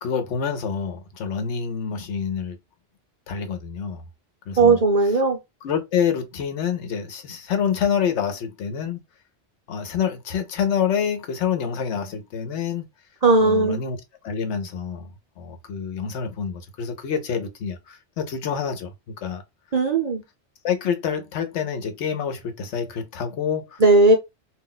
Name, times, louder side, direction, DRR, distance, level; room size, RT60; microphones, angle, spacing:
voice 1, 0.0-2.6 3.3-4.0 4.5-4.8 5.6-9.0 9.7-12.9 13.4-14.0 14.2-18.9 19.2-19.4 20.6-23.8, left 7 dB, 75° left, 1.0 m, -27 dB
voice 2, 4.6-5.4 13.2-13.8 19.7-20.2 23.8-24.1, right 3 dB, 45° right, 0.5 m, -17 dB
2.4 x 2.1 x 3.8 m
omnidirectional pair, 1.2 m